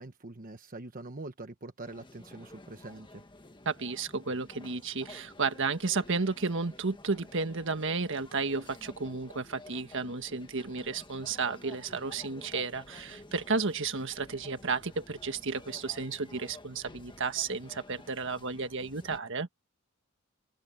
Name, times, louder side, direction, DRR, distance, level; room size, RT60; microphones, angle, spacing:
voice 1, 0.0-3.2, right 2 dB, 40° right, 1.1 m, -44 dB
sound 1, 1.8-19.2, left 2 dB, 25° left, 1.6 m, -52 dB
voice 2, 3.6-19.5, right 4 dB, 60° right, 1.6 m, -33 dB
head